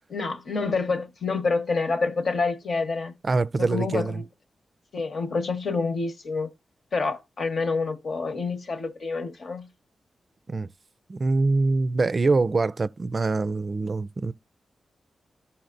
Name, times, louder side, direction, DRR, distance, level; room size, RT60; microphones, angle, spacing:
voice 1, 0.1-3.1 3.6-4.2 4.9-6.5 6.9-9.7, left 4 dB, 65° left, 1.2 m, -27 dB
voice 2, 3.2-4.2 10.5-10.7 11.1-14.3, right 3 dB, 45° right, 0.4 m, -24 dB
13.5 x 5.6 x 2.5 m
cardioid pair, 70°, 0 cm